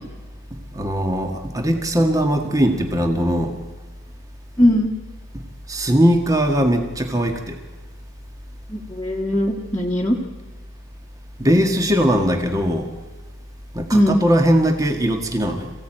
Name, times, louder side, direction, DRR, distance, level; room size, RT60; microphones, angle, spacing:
voice 1, 0.5-3.5 5.3-7.6 11.4-12.9 13.7-15.7, equal, 15° right, 4 dB, 1.8 m, -20 dB
voice 2, 4.6-4.9 8.7-10.2 13.9-14.2, equal, 15° left, -3 dB, 1.8 m, -19 dB
27.0 x 16.5 x 9.1 m, 1.4 s
head